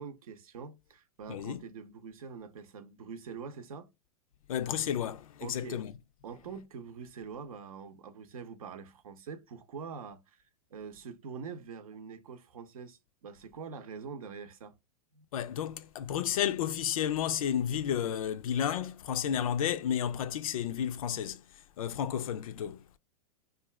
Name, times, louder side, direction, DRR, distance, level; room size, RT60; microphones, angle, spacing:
voice 1, 0.0-3.9 5.4-5.8 6.2-10.4 10.7-14.8 15.1-15.2, right 6 dB, 75° right, 0.6 m, -44 dB
voice 2, 1.3-1.6 4.5-5.9 15.3-21.4 21.8-23.0, left 9 dB, 70° left, 0.4 m, -32 dB
2.5 x 2.3 x 3.1 m
hypercardioid pair, 105°, 18 cm